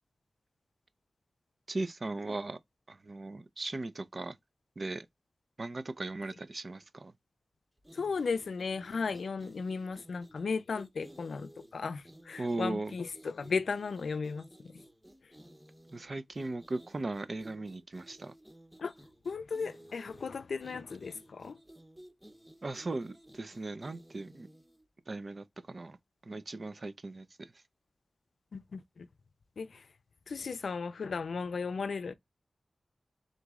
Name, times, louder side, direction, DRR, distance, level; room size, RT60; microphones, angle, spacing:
voice 1, 1.7-2.6 2.9-4.4 4.8-5.1 5.6-7.1 12.4-12.9 15.9-18.3 22.6-24.5 25.1-26.0 26.3-27.5, right 2 dB, 45° right, 0.5 m, -38 dB
sound 1, 7.8-24.8, right 1 dB, 10° right, 0.9 m, -56 dB
voice 2, 7.9-14.5 18.8-18.9 19.2-21.6 28.5-29.1 29.6-29.8 30.3-32.1, left 5 dB, 90° left, 0.4 m, -35 dB
3.9 x 3.0 x 3.5 m
wide cardioid pair, 90°, 0 cm